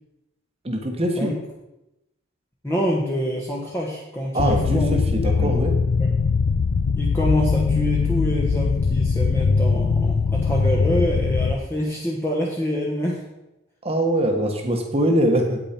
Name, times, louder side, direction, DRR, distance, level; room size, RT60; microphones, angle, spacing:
voice 1, 0.6-1.3 4.3-5.7 13.8-15.6, right 1 dB, 30° right, 4 dB, 1.3 m, -22 dB
voice 2, 2.6-5.0 5.4-5.5 7.0-13.2, equal, 10° left, -4 dB, 1.2 m, -26 dB
sound 1, 4.4-11.5, left 4 dB, 65° left, 0.4 m, -21 dB
8.8 x 8.8 x 4.4 m, 0.91 s
head